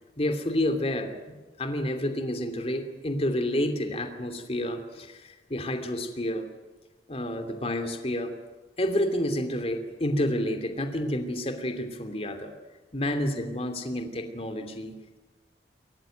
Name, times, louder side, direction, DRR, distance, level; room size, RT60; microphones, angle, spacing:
voice 1, 0.2-6.4 7.1-8.3 8.8-12.5 12.9-15.2, left 1 dB, 35° left, 6 dB, 2.8 m, -29 dB
27.5 x 14.5 x 9.2 m, 1.3 s
head